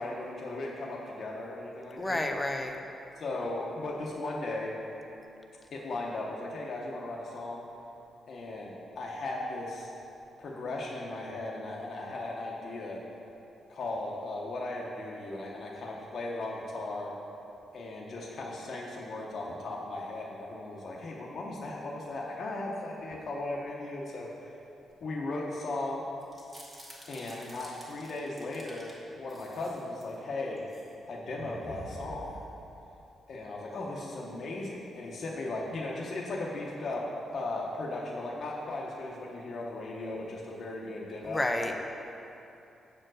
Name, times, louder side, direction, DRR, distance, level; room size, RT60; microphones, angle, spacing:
voice 1, 0.0-2.2 3.2-4.8 5.7-7.6 8.3-9.9 10.4-13.0 13.7-17.1 17.7-24.5 25.0-26.0 27.1-30.6 31.1-32.4 33.3-41.7, left 2 dB, 50° left, -3 dB, 0.8 m, -37 dB
voice 2, 2.0-2.8 41.2-41.7, left 1 dB, 15° left, 4 dB, 0.5 m, -30 dB
sound 1, 26.2-28.9 29.3-30.1 30.6-30.9 31.2-32.9, right 1 dB, 15° right, 1.4 m, -48 dB
7.5 x 4.5 x 6.2 m, 2.8 s
wide cardioid pair, 155°, 0 cm